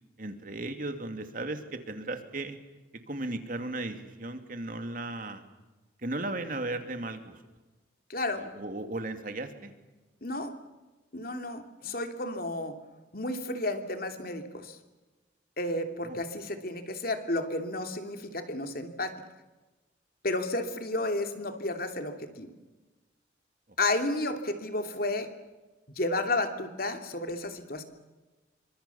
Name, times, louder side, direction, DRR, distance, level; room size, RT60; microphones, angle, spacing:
voice 1, 0.2-2.6 3.1-5.4 6.0-7.4 8.4-9.7 11.8-12.0 16.0-16.2, right 2 dB, 45° right, 7 dB, 2.8 m, -36 dB
voice 2, 8.1-8.4 10.2-10.5 11.1-12.8 13.1-14.8 15.6-19.1 20.2-22.5 23.8-25.3 26.0-27.8, left 2 dB, 50° left, 6 dB, 2.9 m, -32 dB
28.0 x 25.0 x 7.2 m, 1.2 s
head